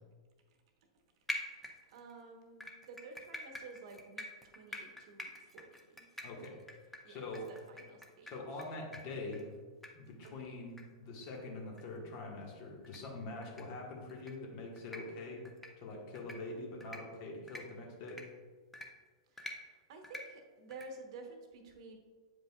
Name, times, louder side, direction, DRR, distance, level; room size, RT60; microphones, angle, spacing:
sound 1, 1.3-2.1 2.6-8.6 8.9-9.0 9.3-9.4 9.8-9.9 10.2-10.3 10.8-10.9 11.2-11.3 11.8-11.9 12.8-13.0 13.4-13.6 14.1-14.3 14.8-15.0 15.5-15.7 16.2-16.4 16.8-17.0 17.5-17.6 18.1-18.2 18.7-18.9 19.4-19.5 20.0-20.2 20.7-20.9, left 1 dB, 5° left, 0.7 m, -44 dB
voice 1, 1.3-4.3 4.5-6.1 7.0-7.2 7.5-8.3 10.2-10.6 19.3-22.0, right 3 dB, 60° right, 4 dB, 1.0 m, -52 dB
voice 2, 6.2-6.6 7.1-7.5 8.2-9.5 9.9-15.4 15.8-18.2, left 2 dB, 50° left, 0 dB, 1.5 m, -44 dB
8.0 x 5.0 x 2.3 m, 1.5 s
hypercardioid pair, 105°, 3 cm